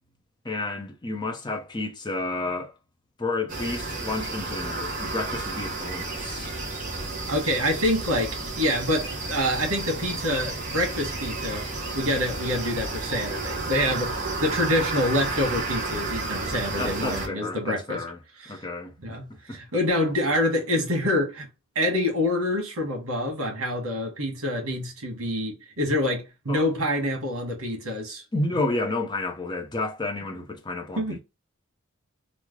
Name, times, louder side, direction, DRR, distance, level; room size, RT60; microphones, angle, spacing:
voice 1, 0.4-2.7 3.2-6.5 16.8-18.2 18.5-18.9 19.5-19.6 26.5-26.6 28.3-31.2, left 2 dB, 20° left, 0.6 m, -30 dB
sound 1, 3.5-17.3, right 3 dB, 35° right, 0.9 m, -32 dB
voice 2, 7.3-11.7 11.9-14.1 14.4-18.0 18.4-18.5 19.0-21.5 21.7-28.2 31.0-31.2, left 1 dB, 70° right, 1.2 m, -26 dB
3.1 x 2.0 x 3.5 m
head